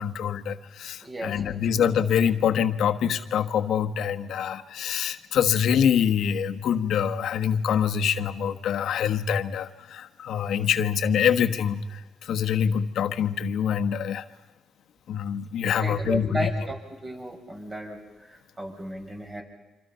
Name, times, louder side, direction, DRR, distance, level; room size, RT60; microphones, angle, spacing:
voice 1, 0.0-14.2 15.1-16.5, left 8 dB, 70° left, 8 dB, 1.4 m, -25 dB
voice 2, 1.0-1.6 1.9-2.0 15.6-16.7 17.0-18.0 18.3-19.4, right 1 dB, 25° right, 1 dB, 6.9 m, -34 dB
27.0 x 26.5 x 5.7 m, 1.2 s
cardioid pair, 90°, 0 cm